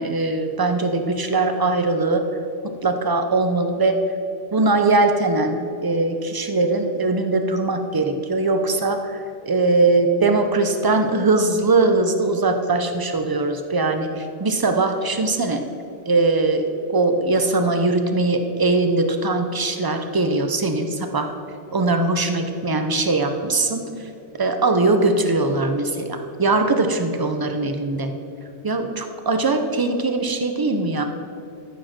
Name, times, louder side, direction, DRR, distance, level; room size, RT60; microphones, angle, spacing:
voice 1, 0.0-2.2 2.6-4.0 4.5-15.6 16.1-16.6 16.9-21.3 21.7-23.9 24.4-28.1 28.6-31.0, right 3 dB, 25° right, 6 dB, 0.5 m, -21 dB
13.5 x 5.1 x 5.9 m, 2.8 s
omnidirectional pair, 1.2 m